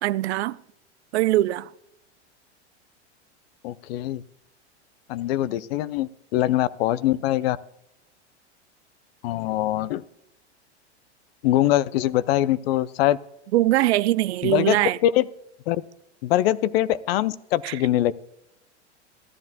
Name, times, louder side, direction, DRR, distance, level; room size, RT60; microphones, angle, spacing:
voice 1, 0.0-0.6 1.1-1.7 13.5-15.0 17.6-17.8, right 16 dB, 65° right, 0.5 m, -22 dB
voice 2, 3.6-4.2 5.1-7.6 9.2-10.0 11.4-13.2 14.4-14.8 15.0-15.2 15.7-15.8 16.2-18.1, left 14 dB, 60° left, 0.5 m, -23 dB
15.0 x 10.5 x 2.2 m
hypercardioid pair, 100°, 34 cm